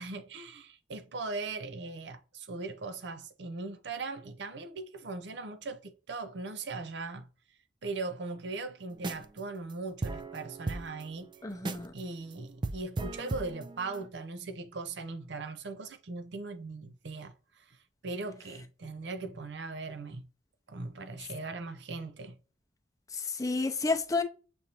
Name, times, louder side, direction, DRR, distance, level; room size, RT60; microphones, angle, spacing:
voice 1, 0.0-7.3 7.8-11.3 11.9-17.8 18.0-20.3 20.7-22.4, right 3 dB, 70° right, 0.6 m, -39 dB
sound 1, 8.9-9.4 9.7-9.8 10.0-12.0 12.3-12.4 12.6-14.1, right 2 dB, 25° right, 0.3 m, -36 dB
voice 2, 11.4-11.9 23.1-24.2, left 3 dB, 20° left, 0.6 m, -30 dB
7.0 x 2.6 x 2.9 m
head